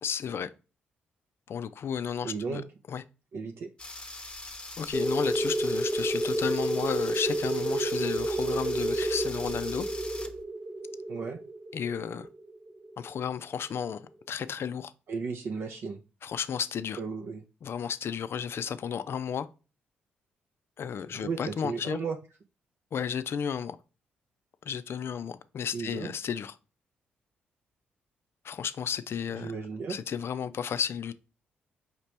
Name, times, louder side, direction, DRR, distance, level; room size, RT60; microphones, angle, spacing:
voice 1, 0.0-0.5 1.5-2.6 2.9-3.0 4.8-9.9 11.7-12.3 13.0-14.9 16.2-17.0 17.6-19.5 20.8-22.0 22.9-23.8 24.6-26.6 28.4-29.6 29.9-31.1, left 7 dB, 55° left, 0.4 m, -33 dB
voice 2, 2.2-2.6 3.3-3.7 11.1-11.4 15.1-16.0 17.0-17.4 21.1-22.2 25.7-26.1 29.4-30.0, right 5 dB, 55° right, 0.5 m, -34 dB
sound 1, 3.8-10.4, left 2 dB, 20° left, 0.8 m, -42 dB
sound 2, 4.9-13.3, right 1 dB, 20° right, 1.0 m, -30 dB
5.0 x 2.9 x 3.3 m
hypercardioid pair, 45°, 5 cm